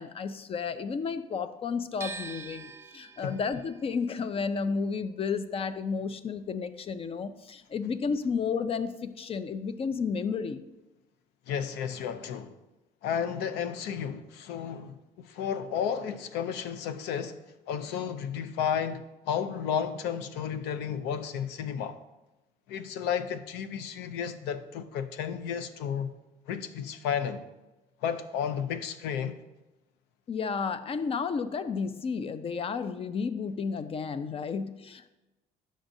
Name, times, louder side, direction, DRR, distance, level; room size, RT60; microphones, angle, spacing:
voice 1, 0.0-10.6 30.3-35.1, left 5 dB, 35° left, 0.5 m, -32 dB
sound 1, 2.0-8.0 8.3-9.6, right 4 dB, 15° right, 0.6 m, -47 dB
voice 2, 11.5-12.5 13.0-17.4 17.7-22.0 22.7-26.1 26.5-27.4 28.0-29.4, left 8 dB, 90° left, 0.5 m, -32 dB
10.0 x 6.2 x 2.7 m
cardioid pair, 110°, 17 cm